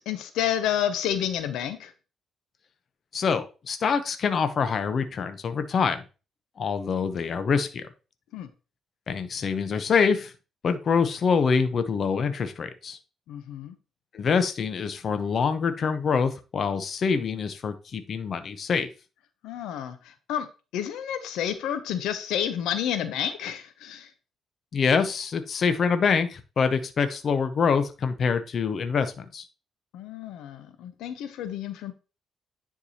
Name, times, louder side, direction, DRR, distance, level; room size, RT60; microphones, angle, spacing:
voice 1, 0.0-1.9 8.3-8.5 13.3-13.8 19.4-20.5 20.7-24.1 29.9-31.9, left 9 dB, 90° left, 10 dB, 0.7 m, -30 dB
voice 2, 3.1-6.0 6.6-7.8 9.1-10.3 10.6-13.0 14.1-18.9 24.7-29.5, left 5 dB, 50° left, 10 dB, 0.7 m, -25 dB
9.8 x 4.6 x 2.8 m, 0.32 s
cardioid pair, 90°, 0 cm